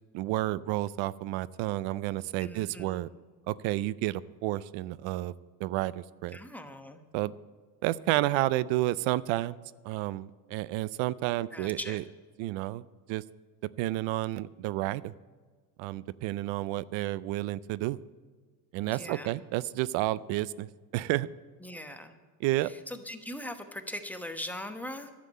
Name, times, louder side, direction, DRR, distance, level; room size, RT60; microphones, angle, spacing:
voice 1, 0.1-3.1 3.5-5.3 5.6-6.4 7.1-7.3 7.8-9.6 9.8-12.0 12.4-12.8 13.1-13.2 13.8-15.1 15.8-18.0 18.7-21.3 22.4-22.7, right 16 dB, 85° right, 20 dB, 0.5 m, -31 dB
voice 2, 2.4-3.0 6.3-7.0 11.5-12.0 18.9-19.3 21.6-22.1 22.6-25.1, left 1 dB, 5° left, 6 dB, 1.0 m, -40 dB
11.5 x 7.5 x 8.3 m, 1.5 s
cardioid pair, 115°, 44 cm